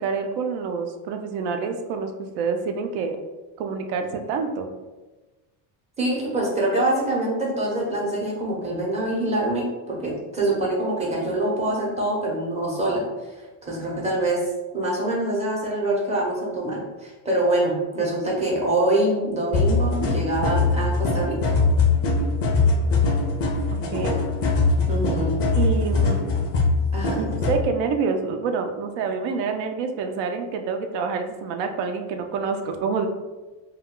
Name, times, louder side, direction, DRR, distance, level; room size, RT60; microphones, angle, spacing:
voice 1, 0.0-3.2 3.6-4.7 23.9-24.2 25.6-26.3 27.2-33.1, right 5 dB, 70° right, 6 dB, 0.5 m, -27 dB
voice 2, 6.0-13.0 13.6-14.4 14.7-21.5 24.8-25.4 26.9-27.3, right 1 dB, 15° right, -4 dB, 0.6 m, -25 dB
sound 1, 19.5-27.6, left 3 dB, 35° left, 0.4 m, -22 dB
2.2 x 2.2 x 3.6 m, 1.2 s
cardioid pair, 150°, 47 cm